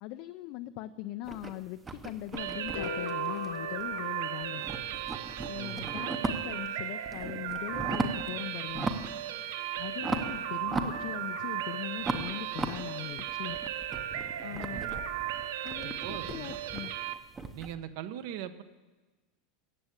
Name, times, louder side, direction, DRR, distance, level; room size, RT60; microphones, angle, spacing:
voice 1, 0.0-4.6 5.5-8.9 9.8-13.6 14.4-14.8 15.6-16.9, left 16 dB, 45° left, 10 dB, 0.4 m, -40 dB
sound 1, 1.2-4.1 4.4-6.7 7.0-8.3 8.7-9.2 9.5-11.5 12.0-17.7, right 3 dB, 15° right, 0.7 m, -37 dB
sound 2, 2.4-17.1, right 10 dB, 85° right, 0.8 m, -36 dB
sound 3, 2.7-5.1, left 6 dB, 80° left, 0.7 m, -41 dB
voice 2, 5.5-5.9 14.7-15.0 15.8-16.5 17.5-18.6, right 10 dB, 55° right, 12 dB, 0.9 m, -41 dB
14.0 x 7.8 x 8.8 m, 1.2 s
supercardioid pair, 170°, 0 cm